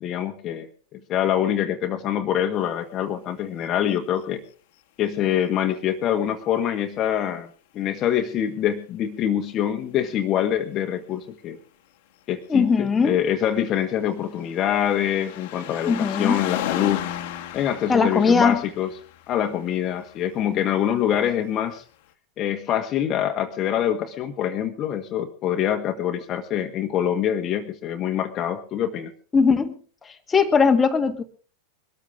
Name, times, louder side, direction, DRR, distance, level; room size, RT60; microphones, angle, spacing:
voice 1, 0.0-4.4 5.0-7.5 7.7-11.6 12.3-17.1 17.5-18.9 19.3-21.8 22.4-29.1, left 10 dB, 30° left, 5 dB, 1.5 m, -25 dB
voice 2, 12.5-13.2 15.9-16.4 17.9-18.6 29.3-29.7 30.3-31.2, left 5 dB, 15° left, 4 dB, 1.7 m, -19 dB
sound 1, 13.7-20.3 21.3-21.4, left 12 dB, 50° left, 1.6 m, -35 dB
22.5 x 13.5 x 3.7 m, 0.39 s
figure-of-eight pair, 90°, 0 cm